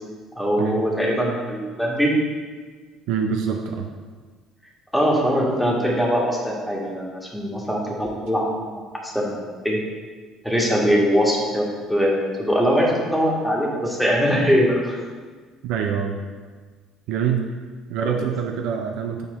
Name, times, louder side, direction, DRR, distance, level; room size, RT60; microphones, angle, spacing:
voice 1, 0.3-2.1 4.9-8.7 9.0-9.8 10.4-15.0 18.0-18.3, equal, ahead, -3 dB, 1.6 m, -22 dB
voice 2, 3.1-3.9 15.6-16.2 17.1-17.4 17.9-19.3, right 7 dB, 65° right, 3 dB, 0.4 m, -25 dB
6.8 x 4.2 x 4.0 m, 1.5 s
figure-of-eight pair, 55°, 0 cm